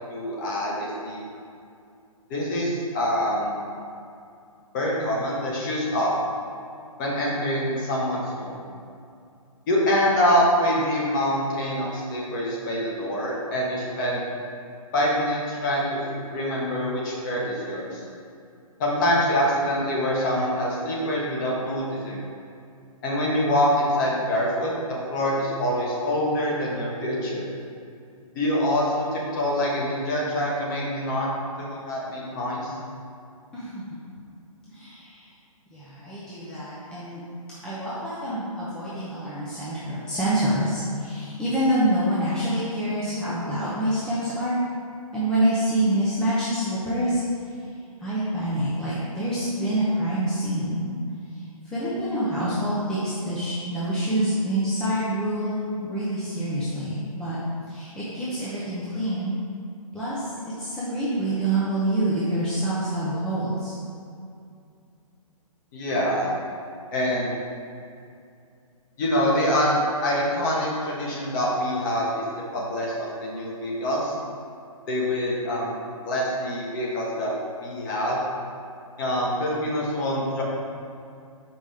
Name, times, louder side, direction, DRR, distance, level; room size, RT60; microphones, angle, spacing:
voice 1, 0.1-1.2 2.3-3.6 4.7-6.1 7.0-8.6 9.7-14.2 14.9-16.0 16.3-18.0 18.8-22.3 23.0-24.7 25.1-27.5 28.3-31.3 31.6-32.7 65.7-66.3 66.9-67.3 69.0-72.2 72.5-74.1 74.9-75.8 76.0-77.3 77.6-78.2 79.0-80.4, equal, 35° left, -4 dB, 1.5 m, -25 dB
voice 2, 33.5-34.0 34.7-35.3 35.7-37.2 37.6-44.6 45.1-47.7 48.0-50.9 51.3-57.4 57.7-59.4 59.9-60.3 60.6-63.8, right 1 dB, 5° left, -11 dB, 0.7 m, -26 dB
6.1 x 5.1 x 3.6 m, 2.4 s
hypercardioid pair, 150°, 19 cm